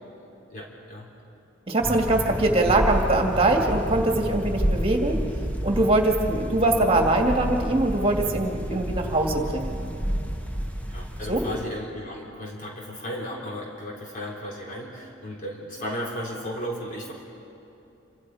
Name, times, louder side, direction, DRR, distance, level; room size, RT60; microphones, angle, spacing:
voice 1, 0.2-1.1 10.9-17.1, equal, 45° left, -3 dB, 3.8 m, -35 dB
voice 2, 1.7-5.2 5.6-9.8 11.3-11.4, right 2 dB, 30° right, 2 dB, 2.4 m, -22 dB
sound 1, 1.8-11.7, equal, 10° left, 1.4 m, -30 dB
27.0 x 26.0 x 5.0 m, 2.8 s
head